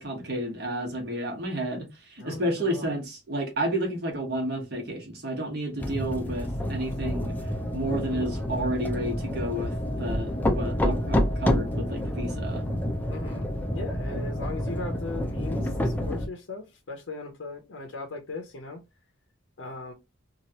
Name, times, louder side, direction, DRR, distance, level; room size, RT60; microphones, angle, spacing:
voice 1, 0.0-7.3 7.7-9.7 10.0-12.6, right 1 dB, 55° right, 1.2 m, -31 dB
voice 2, 2.2-2.9 13.1-18.8 19.6-19.9, left 3 dB, 80° left, 0.7 m, -38 dB
sound 1, 5.8-16.3, left 1 dB, 10° left, 0.4 m, -28 dB
3.0 x 2.4 x 2.8 m
head